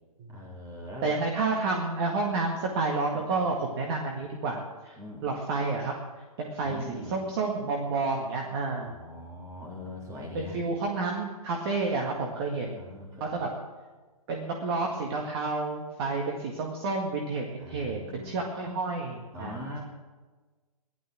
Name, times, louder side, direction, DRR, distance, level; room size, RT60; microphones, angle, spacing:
voice 1, 0.3-1.2 3.1-3.4 5.0-5.3 6.6-7.2 8.8-10.6 12.8-13.5 17.6-18.4 19.3-19.8, left 1 dB, 20° right, -2 dB, 3.3 m, -41 dB
voice 2, 1.0-4.9 5.2-6.0 6.4-8.9 10.3-12.8 13.2-13.5 14.3-19.6, right 3 dB, 40° right, 0 dB, 1.9 m, -30 dB
15.5 x 12.0 x 6.2 m, 1.3 s
hypercardioid pair, 135°, 19 cm